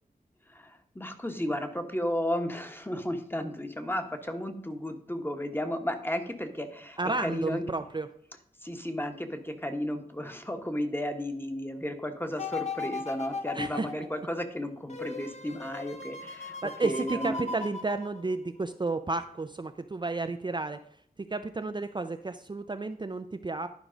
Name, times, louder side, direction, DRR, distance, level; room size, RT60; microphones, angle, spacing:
voice 1, 0.5-7.6 8.6-17.5, left 1 dB, 15° left, 7 dB, 1.2 m, -34 dB
voice 2, 7.0-8.1 13.5-13.9 16.6-20.8 21.3-23.7, right 3 dB, 30° right, 8 dB, 0.5 m, -32 dB
sound 1, 12.4-18.6 19.1-19.2, left 3 dB, 45° left, 1.1 m, -38 dB
11.0 x 4.7 x 5.1 m, 0.64 s
cardioid pair, 55°, 16 cm